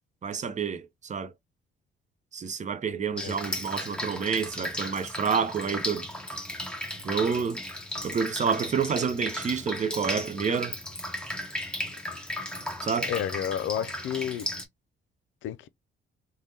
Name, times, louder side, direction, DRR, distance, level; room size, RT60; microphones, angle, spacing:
voice 1, 0.2-1.3 2.3-6.1 7.0-7.6 8.0-10.8 12.8-13.1, right 6 dB, 35° right, 0.6 m, -28 dB
Drip, 3.2-14.6, left 1 dB, 5° left, 0.9 m, -35 dB
voice 2, 13.1-14.5 15.4-15.7, left 10 dB, 75° left, 0.4 m, -31 dB
3.4 x 2.1 x 2.7 m
cardioid pair, 90°, 20 cm